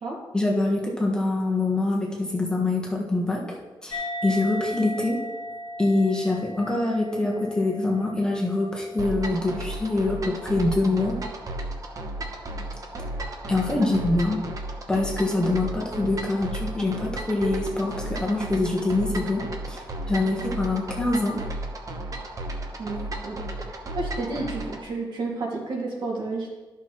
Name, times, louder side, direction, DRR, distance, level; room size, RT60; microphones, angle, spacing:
voice 1, 0.3-3.4 3.8-5.2 5.8-11.2 13.5-14.4 14.9-21.4, left 2 dB, 10° left, -3 dB, 1.4 m, -25 dB
sound 1, 3.9-10.8, left 1 dB, 55° left, 0.9 m, -37 dB
sound 2, 9.0-24.8, right 1 dB, 45° right, 1.0 m, -34 dB
voice 2, 22.8-23.4 23.7-26.5, right 3 dB, 65° right, -2 dB, 2.3 m, -31 dB
13.0 x 6.0 x 3.1 m, 1.2 s
wide cardioid pair, 140°, 8 cm